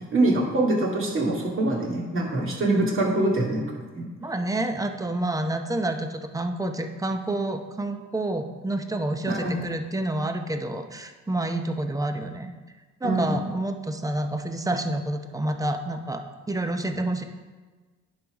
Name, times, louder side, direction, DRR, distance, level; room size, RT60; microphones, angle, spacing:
voice 1, 0.1-3.6 3.9-4.1 9.3-9.6 13.0-13.3, right 2 dB, 45° right, -3 dB, 2.3 m, -24 dB
voice 2, 4.2-12.5 13.0-17.2, right 1 dB, 10° right, 6 dB, 0.7 m, -28 dB
10.5 x 4.0 x 4.8 m, 1.3 s
cardioid pair, 90°, 30 cm